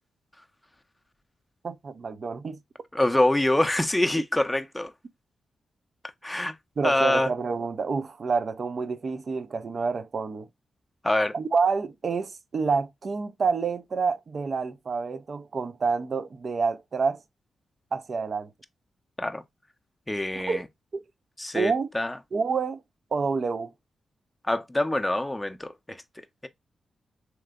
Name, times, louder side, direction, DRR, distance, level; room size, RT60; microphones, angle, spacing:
voice 1, 1.6-2.6 6.8-10.5 11.3-17.2 17.9-18.5 20.4-20.6 20.9-21.0 21.5-21.9 22.3-22.8 23.1-23.7, right 5 dB, 55° right, 0.4 m, -28 dB
voice 2, 2.9-4.9 6.2-6.5 6.8-7.3 11.0-11.3 19.2-19.4 20.1-20.7 21.4-22.2 24.5-26.0, left 1 dB, 15° left, 0.5 m, -25 dB
3.2 x 2.9 x 2.2 m
supercardioid pair, 40°, 0 cm